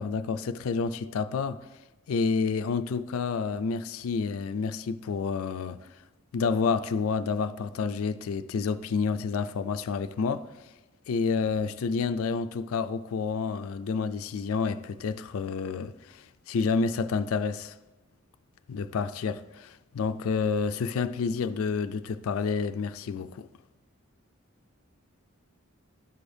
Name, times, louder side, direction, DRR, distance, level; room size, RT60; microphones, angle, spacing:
voice 1, 0.0-1.6 2.1-5.9 6.3-10.5 11.1-17.7 18.7-23.5, left 5 dB, 75° left, 0.4 m, -29 dB
12.5 x 4.9 x 2.6 m
head